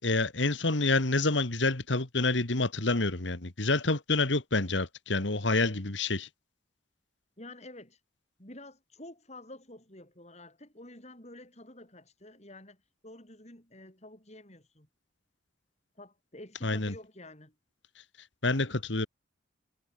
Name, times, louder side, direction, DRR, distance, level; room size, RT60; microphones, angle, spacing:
voice 1, 0.0-6.3 16.6-16.9 18.4-19.1, left 3 dB, 70° left, 2.1 m, -28 dB
voice 2, 7.4-8.0 8.4-14.9 16.0-17.6, left 1 dB, 35° left, 7.7 m, -49 dB
head